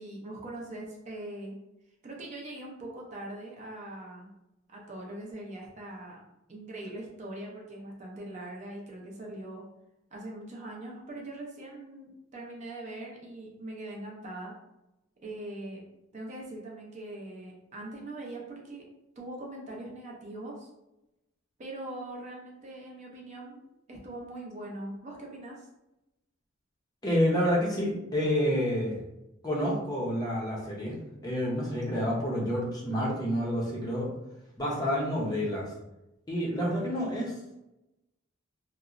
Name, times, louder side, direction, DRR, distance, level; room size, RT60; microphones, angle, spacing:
voice 1, 0.0-1.5 2.0-4.3 4.7-6.2 6.5-9.6 10.1-14.5 15.2-15.8 16.1-18.9 19.2-20.7 21.6-25.7, right 1 dB, 35° right, -2 dB, 0.5 m, -41 dB
voice 2, 27.0-29.0 29.4-31.0 31.2-34.1 34.6-35.7 36.3-37.3, equal, 20° left, -3 dB, 0.5 m, -28 dB
2.9 x 2.0 x 2.4 m, 0.92 s
head